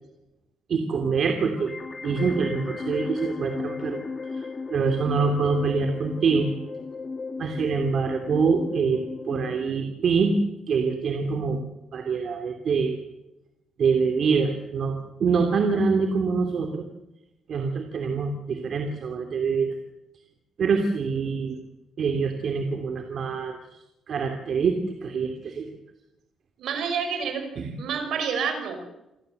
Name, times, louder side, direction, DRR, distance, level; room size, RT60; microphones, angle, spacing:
voice 1, 0.7-1.7 2.0-4.0 4.4-4.5 4.7-6.5 7.4-10.4 10.7-11.6 11.9-13.0 13.8-14.9 15.2-16.8 17.5-19.7 20.6-21.5 22.0-23.6 24.1-24.8 25.0-25.7 27.6-27.7, right 5 dB, 55° right, 4 dB, 2.7 m, -25 dB
sound 1, 1.6-9.6, left 4 dB, 30° left, 2.0 m, -35 dB
voice 2, 21.2-21.6 26.6-27.5 27.8-28.8, right 6 dB, 75° right, 6 dB, 5.7 m, -29 dB
27.5 x 13.5 x 8.0 m, 0.93 s
cardioid pair, 90°, 0 cm